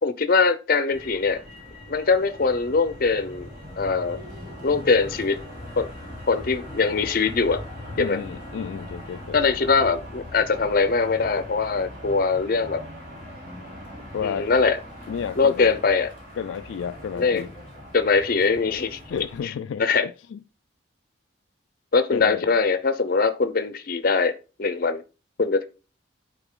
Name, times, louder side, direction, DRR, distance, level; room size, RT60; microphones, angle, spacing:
voice 1, 0.0-1.4 1.9-3.5 3.8-4.2 4.6-5.4 5.8-5.9 6.3-7.6 8.0-8.2 9.3-12.8 14.2-14.8 15.4-16.1 17.2-17.4 17.9-19.0 19.8-20.1 21.9-24.3 24.6-25.0 25.4-25.7, left 4 dB, 50° left, 0.6 m, -22 dB
Motor vehicle (road), 0.9-19.4, left 1 dB, 50° right, 4.3 m, -40 dB
voice 2, 8.0-9.4 14.1-14.5 15.1-15.7 16.4-17.5 19.1-20.4 22.1-22.4, left 7 dB, 90° left, 0.3 m, -31 dB
8.9 x 3.9 x 3.7 m
head